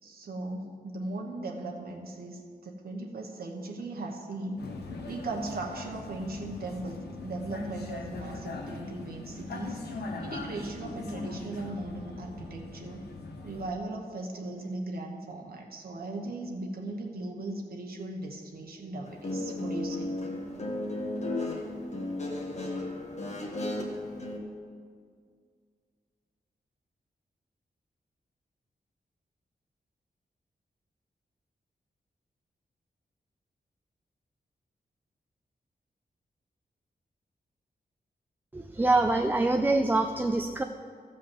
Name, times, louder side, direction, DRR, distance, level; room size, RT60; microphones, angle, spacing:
voice 1, 0.0-4.6 5.1-13.0 13.4-20.1, right 2 dB, 70° right, 0 dB, 1.1 m, -38 dB
Vehicle, 4.6-13.7, left 3 dB, 90° left, 1.1 m, -40 dB
Guitar, 19.1-24.4, left 2 dB, 45° left, 1.4 m, -34 dB
voice 2, 38.5-40.6, right 2 dB, 10° right, 6 dB, 0.4 m, -25 dB
14.0 x 5.3 x 7.2 m, 2.1 s
wide cardioid pair, 125°, 16 cm